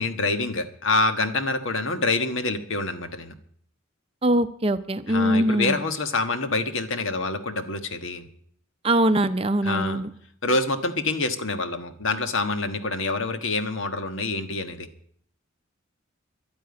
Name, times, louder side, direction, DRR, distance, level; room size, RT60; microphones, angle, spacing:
voice 1, 0.0-3.3 5.1-8.2 9.6-10.0 10.4-14.9, left 3 dB, 70° left, 8 dB, 1.5 m, -26 dB
voice 2, 4.2-5.8 8.8-10.1, right 1 dB, 30° right, 11 dB, 0.6 m, -22 dB
11.5 x 9.2 x 9.8 m, 0.63 s
head